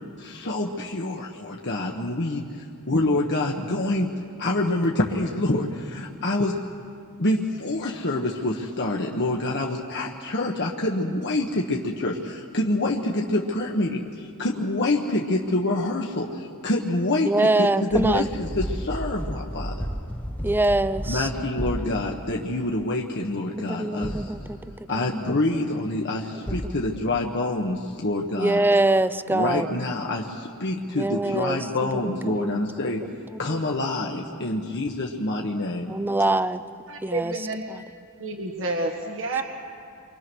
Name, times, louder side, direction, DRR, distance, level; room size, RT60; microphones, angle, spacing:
voice 1, 0.2-4.1 4.4-6.6 7.2-19.7 21.0-24.3 24.9-28.6 29.3-33.0 33.4-35.9, left 2 dB, 55° left, -1 dB, 1.4 m, -26 dB
voice 2, 17.3-18.3 20.4-21.3 23.5-24.6 28.4-29.7 30.9-31.6 32.0-32.6 35.9-36.6 37.0-37.3 37.7-37.8, right 2 dB, 10° right, 13 dB, 0.5 m, -23 dB
sound 1, 17.9-22.6 24.0-24.9 26.5-26.8, equal, 5° left, 1.0 m, -33 dB
voice 3, 36.9-37.7 38.2-39.4, right 2 dB, 60° right, 1 dB, 1.6 m, -29 dB
29.5 x 24.5 x 6.3 m, 2.4 s
head